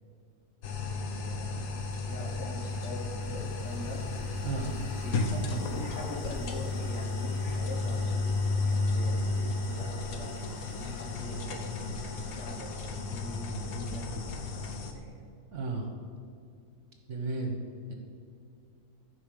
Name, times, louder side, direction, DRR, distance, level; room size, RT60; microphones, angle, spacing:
sound 1, 0.6-14.9, left 3 dB, 65° left, 1.3 m, -33 dB
voice 1, 0.8-4.1 5.0-5.4 5.7-15.2, left 1 dB, 50° left, 0 dB, 1.7 m, -42 dB
sound 2, 1.2-14.5, equal, 15° left, 2.0 m, -50 dB
voice 2, 4.4-4.8 15.5-15.9 17.1-17.6 17.9-18.0, right 3 dB, 50° right, 2 dB, 1.4 m, -33 dB
13.5 x 5.1 x 6.6 m, 2.4 s
omnidirectional pair, 1.6 m